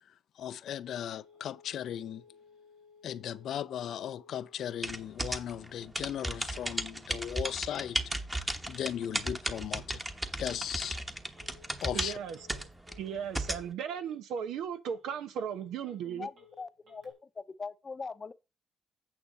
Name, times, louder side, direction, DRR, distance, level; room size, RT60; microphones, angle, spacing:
voice 1, 0.1-2.2 3.0-8.0 8.7-10.0 10.4-11.0 11.8-12.2, left 10 dB, 70° left, 0.5 m, -37 dB
Telephone, 1.1-17.1, left 6 dB, 65° right, 4.0 m, -61 dB
sound 1, 4.8-13.7, right 1 dB, 15° right, 1.1 m, -35 dB
voice 2, 11.9-12.4 13.0-16.3, right 8 dB, 85° right, 1.0 m, -36 dB
voice 3, 16.6-18.3, left 4 dB, 30° left, 0.7 m, -41 dB
8.8 x 6.5 x 4.1 m
cardioid pair, 90°, 0 cm